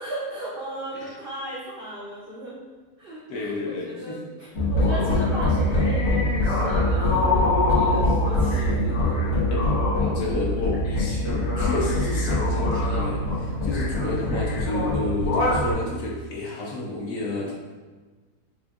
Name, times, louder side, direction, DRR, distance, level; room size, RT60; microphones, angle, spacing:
voice 1, 0.0-2.5 3.0-9.1, right 1 dB, 90° right, -6 dB, 0.5 m, -36 dB
voice 2, 3.3-4.2 9.5-17.5, left 2 dB, 65° left, -3 dB, 0.9 m, -31 dB
sound 1, 4.5-15.7, left 1 dB, 85° left, 1.5 m, -23 dB
5.0 x 2.5 x 2.3 m, 1.4 s
omnidirectional pair, 1.8 m